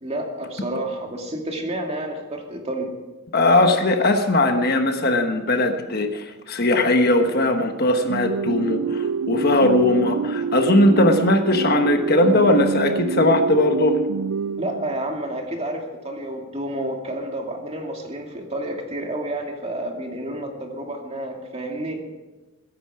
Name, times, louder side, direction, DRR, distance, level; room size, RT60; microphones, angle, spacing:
voice 1, 0.0-2.9 14.6-22.0, right 1 dB, 30° right, 2 dB, 2.3 m, -30 dB
voice 2, 3.3-14.0, left 1 dB, 45° left, 5 dB, 1.2 m, -19 dB
sound 1, 8.1-15.3, right 6 dB, 85° right, 0.4 m, -27 dB
22.0 x 10.5 x 4.9 m, 1.2 s
head